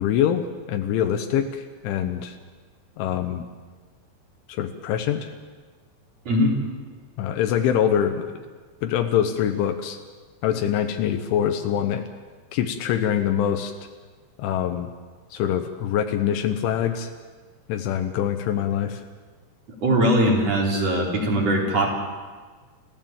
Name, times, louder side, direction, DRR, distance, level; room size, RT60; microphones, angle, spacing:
voice 1, 0.0-2.4 3.0-3.5 4.5-5.3 7.2-8.4 8.8-10.0 10.4-12.0 12.5-13.7 14.4-14.9 15.3-17.1 17.7-19.0, left 9 dB, 85° left, 6 dB, 3.5 m, -24 dB
voice 2, 19.8-21.9, equal, 35° right, -1 dB, 4.5 m, -20 dB
29.0 x 15.5 x 7.3 m, 1.5 s
omnidirectional pair, 5.4 m